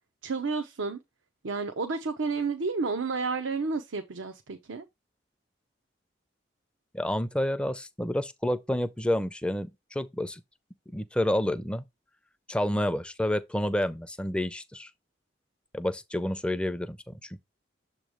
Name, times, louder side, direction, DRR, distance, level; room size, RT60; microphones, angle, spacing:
voice 1, 0.2-1.0 1.4-4.8, right 4 dB, 90° right, 0.7 m, -31 dB
voice 2, 6.9-10.4 10.9-11.8 12.5-14.9 15.7-17.4, left 1 dB, 5° left, 0.4 m, -29 dB
7.1 x 3.1 x 5.0 m
head